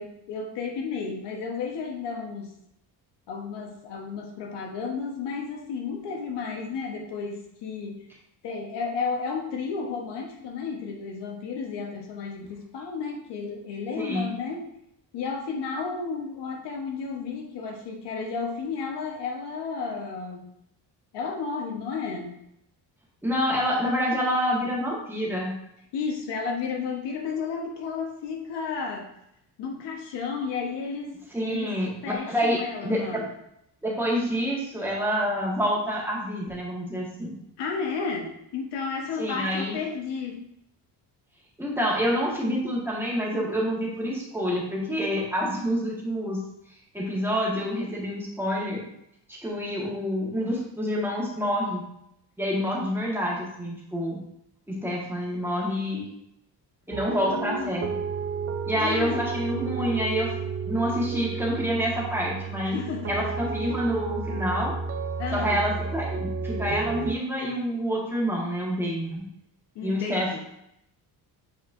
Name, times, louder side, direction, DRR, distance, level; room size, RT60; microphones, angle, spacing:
voice 1, 0.0-2.5 3.3-8.1 8.4-14.6 15.1-20.5 21.1-22.4 25.9-29.1 29.6-31.2 31.5-31.8 32.0-33.3 37.6-40.4 57.2-57.7 58.7-59.2 62.6-63.1 65.2-65.6 69.7-70.4, left 5 dB, 90° left, 2 dB, 1.3 m, -32 dB
voice 2, 23.2-25.5 31.3-33.2 33.8-37.3 39.2-39.8 41.6-46.4 46.9-48.8 49.3-51.8 52.4-54.2 54.7-56.1 56.9-57.9 58.7-60.3 60.7-62.8 63.1-64.7 65.3-69.2 69.8-70.4, equal, 5° right, -5 dB, 1.7 m, -27 dB
sound 1, 56.9-67.1, right 5 dB, 35° right, 0.4 m, -32 dB
8.4 x 4.5 x 2.7 m, 0.77 s
cardioid pair, 150°, 41 cm